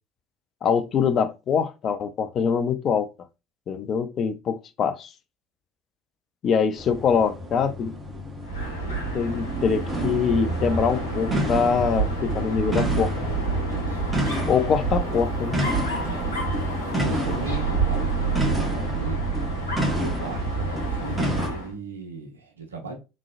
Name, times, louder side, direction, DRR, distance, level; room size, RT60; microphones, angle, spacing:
voice 1, 0.6-3.1 3.7-5.1 6.4-7.9 8.8-13.1 14.5-15.6, left 6 dB, 40° left, 0.5 m, -24 dB
sound 1, 6.8-21.5, equal, 15° right, 1.2 m, -30 dB
Dog, 8.4-21.7, right 4 dB, 80° left, 1.1 m, -29 dB
sound 2, 9.4-11.2, right 4 dB, 40° right, 0.6 m, -32 dB
voice 2, 13.7-14.1 16.1-16.4 16.9-19.3 19.9-22.9, right 4 dB, 80° right, 0.9 m, -37 dB
3.7 x 3.1 x 2.4 m
figure-of-eight pair, 65°, 0 cm